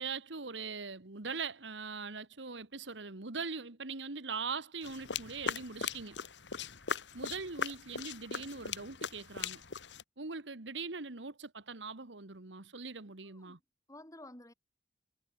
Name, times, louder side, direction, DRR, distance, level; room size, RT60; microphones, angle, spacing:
voice 1, 0.0-6.2 7.1-9.6 10.2-13.6, right 4 dB, 80° right, 1.8 m, -41 dB
sound 1, 4.8-10.0, left 6 dB, 75° left, 1.7 m, -39 dB
voice 2, 8.3-8.7 13.3-13.6 13.9-14.5, left 1 dB, 20° left, 7.8 m, -53 dB
head